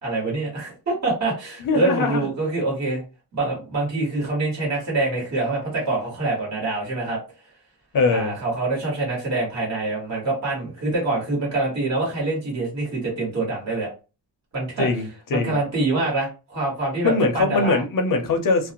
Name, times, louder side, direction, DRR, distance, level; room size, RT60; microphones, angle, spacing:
voice 1, 0.0-3.0 3.3-7.2 8.1-13.9 14.5-14.9 15.3-17.8, right 2 dB, 40° right, 1.3 m, -25 dB
voice 2, 1.6-2.3 7.9-8.4 14.8-15.6 17.0-18.7, left 3 dB, 50° left, 0.6 m, -22 dB
2.5 x 2.1 x 2.8 m
wide cardioid pair, 155°, 43 cm